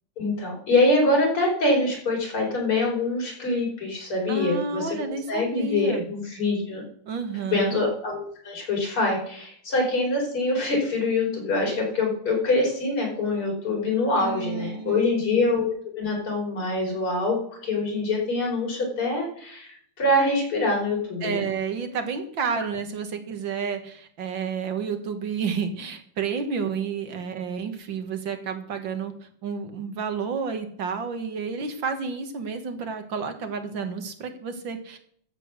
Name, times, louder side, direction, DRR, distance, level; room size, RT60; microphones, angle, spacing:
voice 1, 0.2-6.8 7.5-15.7 16.0-17.4 17.6-21.4, left 2 dB, 90° left, -2 dB, 5.7 m, -24 dB
voice 2, 4.3-6.1 7.1-7.8 14.2-15.2 21.2-35.0, right 5 dB, 65° right, 7 dB, 2.2 m, -30 dB
13.0 x 7.9 x 6.4 m, 0.62 s
omnidirectional pair, 2.3 m